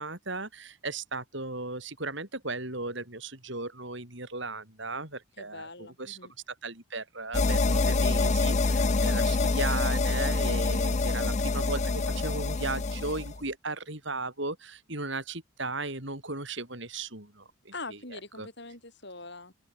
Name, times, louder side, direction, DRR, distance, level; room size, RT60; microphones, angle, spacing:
voice 1, 0.0-6.2 6.6-17.7 18.1-18.5, right 3 dB, 55° right, 5.2 m, -36 dB
voice 2, 5.4-6.3 17.7-19.5, left 3 dB, 55° left, 5.9 m, -43 dB
sound 1, 7.3-13.4, left 3 dB, 35° left, 0.5 m, -26 dB
open air
head